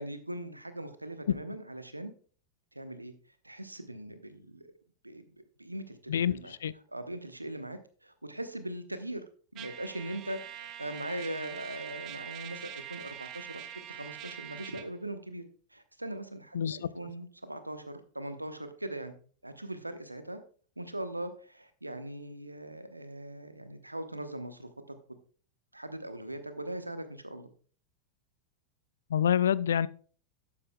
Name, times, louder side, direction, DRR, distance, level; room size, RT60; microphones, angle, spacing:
voice 1, 0.0-2.1 2.7-3.1 3.4-4.7 5.0-5.2 5.6-6.5 6.9-9.2 9.5-13.6 13.9-15.4 15.7-19.1 19.4-20.4 20.8-25.0 25.7-27.5, right 1 dB, 85° right, 0.9 m, -40 dB
voice 2, 6.1-6.7 16.5-16.9 29.1-29.9, left 9 dB, 65° left, 0.4 m, -27 dB
Trumpet, 9.6-14.9, right 11 dB, 35° right, 1.0 m, -44 dB
12.0 x 8.5 x 2.2 m
figure-of-eight pair, 90°, 0 cm